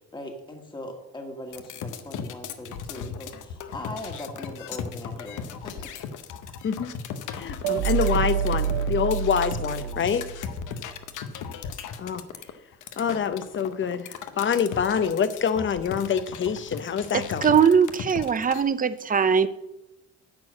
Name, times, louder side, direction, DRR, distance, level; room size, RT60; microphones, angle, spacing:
voice 1, 0.0-5.9 9.7-10.1, left 1 dB, 15° left, 2 dB, 1.6 m, -40 dB
sound 1, 1.5-18.6, left 7 dB, 85° left, 0.9 m, -37 dB
voice 2, 6.6-7.0 7.3-10.3 12.0-12.2 13.0-17.6, left 7 dB, 40° left, 12 dB, 0.8 m, -26 dB
sound 2, 7.6-10.8, right 9 dB, 80° right, 0.8 m, -27 dB
voice 3, 17.1-19.5, right 7 dB, 30° right, 13 dB, 0.6 m, -21 dB
10.5 x 4.6 x 7.6 m, 0.93 s
cardioid pair, 90°, 30 cm